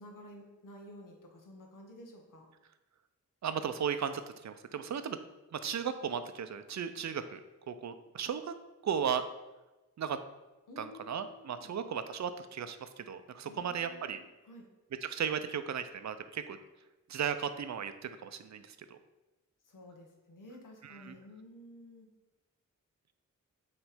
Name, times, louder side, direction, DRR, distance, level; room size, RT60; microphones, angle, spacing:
voice 1, 0.0-2.5 10.7-11.8 13.4-14.7 19.6-22.1, left 1 dB, 85° left, 2 dB, 1.1 m, -52 dB
voice 2, 3.4-5.2 5.5-7.4 7.7-8.5 8.8-9.2 10.0-10.2 10.8-14.2 15.0-16.6 17.1-19.0 20.8-21.1, right 7 dB, 60° right, 10 dB, 0.5 m, -36 dB
6.1 x 3.2 x 4.9 m, 1.1 s
wide cardioid pair, 120°, 31 cm